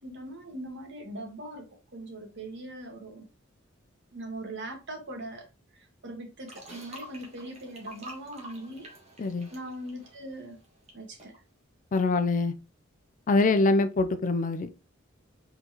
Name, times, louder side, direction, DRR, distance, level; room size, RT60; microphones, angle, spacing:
voice 1, 0.0-3.3 4.1-5.5 5.7-8.9 9.5-10.6 10.9-11.4, right 1 dB, 60° right, 1.6 m, -41 dB
sound 1, 6.5-10.9 11.2-11.4, right 1 dB, 30° right, 1.4 m, -48 dB
voice 2, 9.2-9.5 11.9-12.5 13.3-14.7, left 3 dB, 40° left, 0.4 m, -24 dB
4.5 x 4.0 x 2.9 m
head